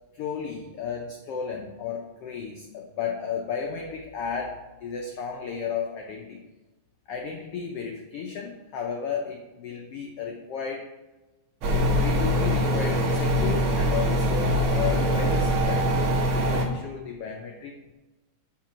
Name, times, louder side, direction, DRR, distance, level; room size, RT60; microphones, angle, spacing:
voice 1, 0.1-6.4 7.1-10.9 11.8-16.2 16.5-17.9, left 6 dB, 85° left, 2 dB, 1.3 m, -33 dB
sound 1, 11.6-16.7, equal, 60° right, 1.4 m, -23 dB
7.4 x 4.8 x 6.0 m, 1.1 s
omnidirectional pair, 3.6 m